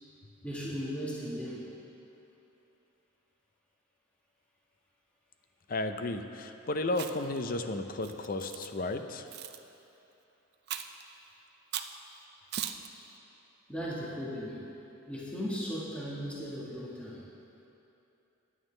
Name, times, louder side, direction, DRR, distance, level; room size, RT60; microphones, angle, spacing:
voice 1, 0.4-1.7 13.7-14.7 15.1-17.2, equal, 5° left, -7 dB, 1.4 m, -37 dB
voice 2, 5.7-9.3, left 2 dB, 45° left, 7 dB, 0.6 m, -33 dB
Chewing mastication, 6.9-7.4 8.0-8.7 9.3-9.6 10.7-11.0 11.7-12.0 12.5-12.9, right 10 dB, 50° right, 0.5 m, -38 dB
18.0 x 9.4 x 3.3 m, 2.9 s
head